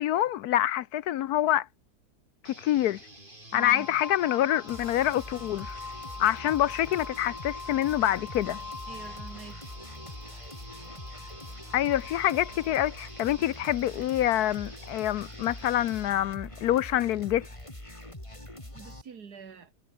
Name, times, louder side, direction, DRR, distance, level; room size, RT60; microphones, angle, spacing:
voice 1, 0.0-1.7 2.4-3.0 3.5-5.8 6.2-8.6 11.7-17.4, left 12 dB, 70° left, 1.1 m, -26 dB
sound 1, 2.4-16.1, right 1 dB, 30° right, 6.3 m, -50 dB
voice 2, 3.5-3.9 8.9-9.7 18.7-19.7, right 6 dB, 65° right, 2.4 m, -45 dB
sound 2, 3.6-13.7, left 4 dB, 45° left, 2.7 m, -44 dB
sound 3, 4.7-19.0, left 1 dB, 15° left, 5.3 m, -44 dB
omnidirectional pair, 1.8 m